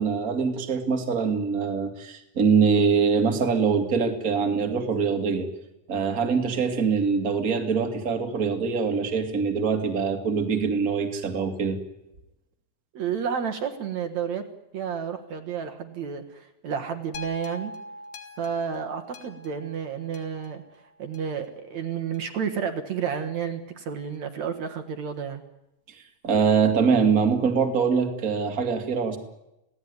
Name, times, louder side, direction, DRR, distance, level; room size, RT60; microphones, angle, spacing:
voice 1, 0.0-5.5 5.9-11.8 26.2-29.2, right 5 dB, 30° right, 4 dB, 2.5 m, -23 dB
voice 2, 12.9-14.5 14.7-17.7 18.4-20.6 21.0-25.4, right 7 dB, 60° right, 5 dB, 2.8 m, -31 dB
sound 1, 17.1-21.5 22.1-22.2, left 2 dB, 75° left, 3.7 m, -43 dB
27.0 x 17.5 x 9.7 m, 0.90 s
omnidirectional pair, 3.7 m